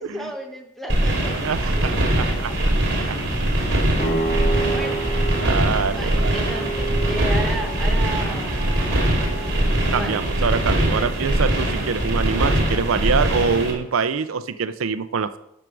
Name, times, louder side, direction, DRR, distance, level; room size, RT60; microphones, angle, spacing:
voice 1, 0.0-1.9 4.7-5.0 6.0-10.2 11.0-11.1, right 1 dB, ahead, 3 dB, 1.1 m, -34 dB
sound 1, 0.9-13.7, right 1 dB, 55° right, 2.7 m, -22 dB
voice 2, 1.3-2.7 3.1-3.2 4.3-4.6 5.3-6.4 9.9-15.4, right 5 dB, 80° right, 13 dB, 0.5 m, -25 dB
sound 2, 3.0-6.0 6.3-6.5 7.0-7.8 8.1-12.3, left 1 dB, 75° left, 3.0 m, -45 dB
sound 3, 4.0-12.3, right 3 dB, 30° left, 2.6 m, -31 dB
11.0 x 6.1 x 4.7 m, 0.82 s
head